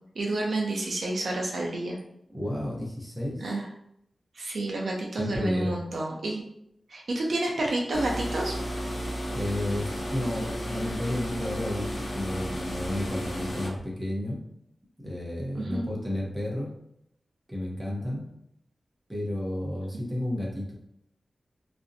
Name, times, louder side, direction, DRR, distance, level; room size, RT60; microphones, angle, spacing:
voice 1, 0.2-2.0 3.4-3.7 4.4-6.5 6.9-8.6 15.5-15.9, right 2 dB, 70° right, -1 dB, 0.4 m, -29 dB
voice 2, 2.3-3.4 5.2-5.8 9.3-14.4 15.0-16.7 17.5-18.2 19.1-20.7, left 1 dB, 10° right, -2 dB, 0.6 m, -32 dB
sound 1, 7.9-13.7, equal, 85° left, 0.6 m, -33 dB
2.5 x 2.0 x 2.5 m, 0.76 s
wide cardioid pair, 115°, 0 cm